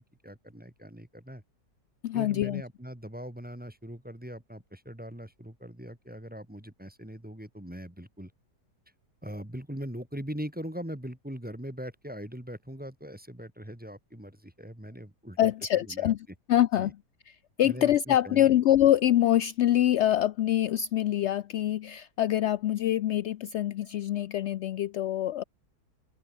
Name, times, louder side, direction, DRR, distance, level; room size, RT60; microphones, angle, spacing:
voice 1, 0.0-1.4 2.1-8.3 9.2-15.5 15.9-16.1 16.8-16.9 17.6-18.6, equal, 5° right, 1.7 m, -41 dB
voice 2, 2.0-2.6 15.4-17.0 17.3-17.4 17.6-25.4, left 12 dB, 75° left, 0.6 m, -25 dB
omnidirectional pair, 1.7 m